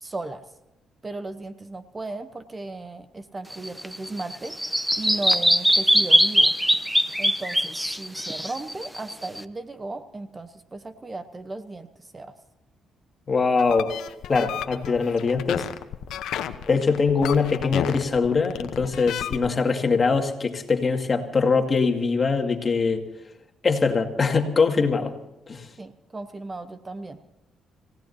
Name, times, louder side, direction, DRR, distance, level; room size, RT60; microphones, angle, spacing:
voice 1, 0.0-0.4 1.0-6.6 7.2-12.3 25.8-27.2, right 2 dB, 25° right, 10 dB, 1.0 m, -36 dB
Bird vocalization bird call bird song, 3.5-9.4, equal, ahead, 0.8 m, -22 dB
voice 2, 13.3-13.9 14.3-15.6 16.7-23.0 23.6-25.1 25.5-25.7, left 4 dB, 35° left, 3 dB, 2.2 m, -22 dB
sound 1, 13.6-19.5, left 10 dB, 85° left, 1.0 m, -32 dB
27.0 x 17.0 x 2.8 m, 0.92 s
cardioid pair, 90°, 0 cm